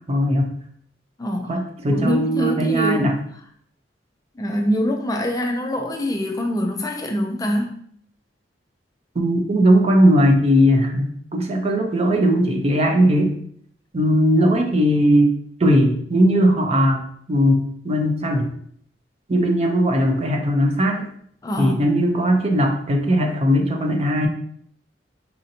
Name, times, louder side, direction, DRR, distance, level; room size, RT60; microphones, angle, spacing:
voice 1, 0.1-0.5 1.5-3.2 9.2-13.4 13.9-15.3 15.6-17.0 17.3-18.5 19.3-21.1 21.6-24.3, equal, 35° right, 3 dB, 0.5 m, -18 dB
voice 2, 1.2-1.6 1.9-3.1 4.4-7.8 21.4-21.8, equal, 20° left, 2 dB, 0.4 m, -24 dB
4.1 x 2.6 x 2.7 m, 0.63 s
head